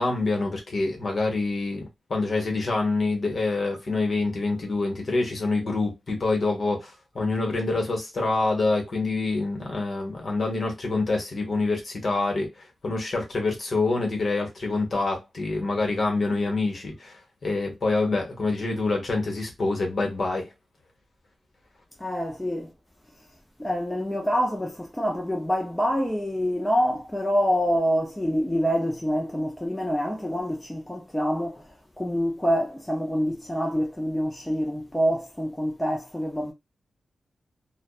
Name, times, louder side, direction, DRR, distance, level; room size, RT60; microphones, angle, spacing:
voice 1, 0.0-20.5, left 3 dB, 45° left, 1.0 m, -26 dB
voice 2, 22.0-22.7 23.6-31.6 32.0-36.5, equal, 5° left, 0.4 m, -26 dB
2.5 x 2.1 x 2.3 m
wide cardioid pair, 145°, 0 cm